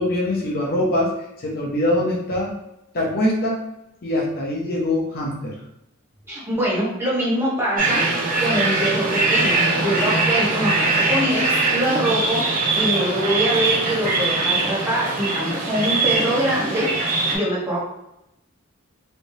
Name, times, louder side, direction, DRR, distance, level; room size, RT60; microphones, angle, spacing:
voice 1, 0.0-2.5 2.9-3.6 4.0-5.6, left 1 dB, 45° left, -3 dB, 0.8 m, -23 dB
voice 2, 6.3-8.0 8.4-12.4 12.7-17.9, equal, 10° right, -7 dB, 1.2 m, -23 dB
sound 1, 7.8-17.4, right 3 dB, 40° right, 0.9 m, -22 dB
3.3 x 3.0 x 2.7 m, 0.86 s
head